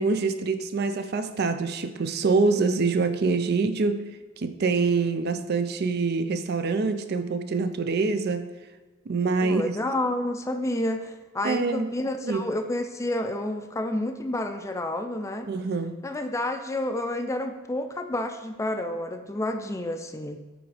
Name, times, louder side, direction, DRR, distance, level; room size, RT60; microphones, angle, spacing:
voice 1, 0.0-4.0 4.4-8.5 9.1-9.7 11.4-11.9 12.2-12.5 15.5-16.0, right 4 dB, 50° right, 10 dB, 0.4 m, -25 dB
voice 2, 9.4-15.5 16.0-20.4, left 1 dB, 15° left, 7 dB, 0.4 m, -30 dB
8.8 x 3.5 x 4.9 m, 1.3 s
head